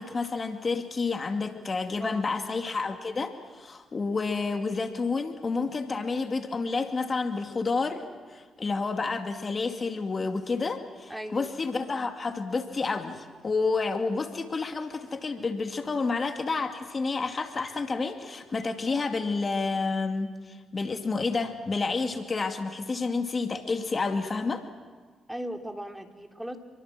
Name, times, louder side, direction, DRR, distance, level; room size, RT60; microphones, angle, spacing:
voice 1, 0.0-8.0 8.3-24.7, left 4 dB, 40° left, 6 dB, 2.4 m, -30 dB
voice 2, 2.0-2.5 11.1-11.6 25.3-26.6, equal, 10° right, 4 dB, 3.4 m, -38 dB
28.0 x 23.5 x 7.6 m, 1.5 s
hypercardioid pair, 45°, 0 cm